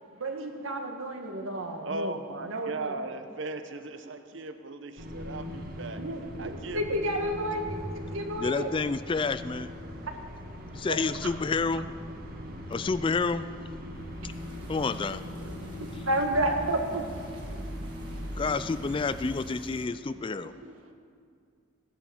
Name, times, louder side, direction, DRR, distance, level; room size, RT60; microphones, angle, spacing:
voice 1, 0.1-2.2 2.5-3.0 6.0-8.7 10.1-10.2 10.9-11.0 11.2-11.3 15.1-15.5 15.8-17.0 19.2-20.8, right 1 dB, 80° right, 1.8 m, -32 dB
voice 2, 1.8-6.1 6.4-7.0, right 2 dB, 65° right, 1.0 m, -38 dB
sound 1, 5.0-19.3, equal, 45° right, 1.7 m, -41 dB
voice 3, 8.4-9.7 10.7-11.9 12.7-13.5 14.2-14.3 14.7-15.2 18.4-20.5, left 4 dB, 25° left, 0.3 m, -29 dB
sound 2, 13.9-19.2, left 1 dB, 80° left, 1.7 m, -42 dB
sound 3, 14.3-19.9, right 1 dB, 20° right, 2.3 m, -51 dB
16.5 x 11.0 x 7.2 m
head